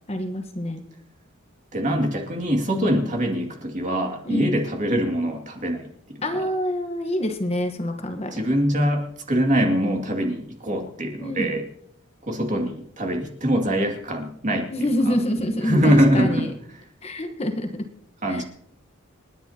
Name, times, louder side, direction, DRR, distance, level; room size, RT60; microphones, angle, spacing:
voice 1, 0.1-0.8 4.2-4.6 6.2-8.3 11.2-11.5 14.7-16.5 17.0-17.8 18.3-18.4, left 1 dB, 30° left, 5 dB, 1.2 m, -26 dB
voice 2, 1.7-6.2 8.3-11.6 12.2-15.1 15.6-16.5 18.2-18.4, equal, 35° right, 2 dB, 2.3 m, -23 dB
29.0 x 10.0 x 2.9 m, 0.71 s
head